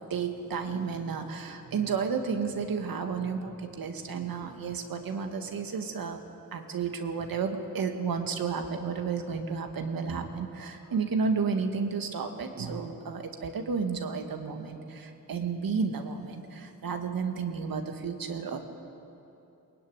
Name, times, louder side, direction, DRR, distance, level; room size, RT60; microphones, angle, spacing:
voice 1, 0.1-6.2 6.5-18.6, right 5 dB, 85° right, 5 dB, 2.1 m, -32 dB
22.0 x 20.5 x 9.7 m, 2.8 s
cardioid pair, 80°, 34 cm